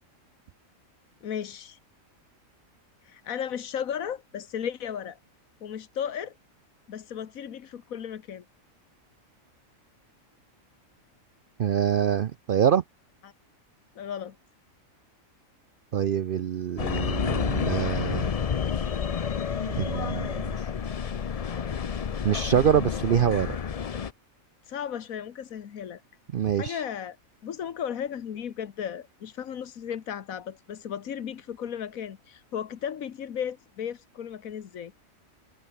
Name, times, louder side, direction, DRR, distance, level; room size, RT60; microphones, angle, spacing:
voice 1, 1.2-1.8 3.0-5.2 5.6-6.3 6.9-8.4 13.2-13.3 13.9-14.3 24.7-26.0 26.6-27.2 27.4-34.9, left 8 dB, 85° left, 1.6 m, -35 dB
voice 2, 11.6-12.8 15.9-18.3 19.8-20.7 22.2-23.6 26.3-26.8, right 9 dB, 60° right, 0.6 m, -25 dB
sound 1, 16.8-24.1, left 7 dB, 45° left, 0.4 m, -30 dB
omnidirectional pair, 1.4 m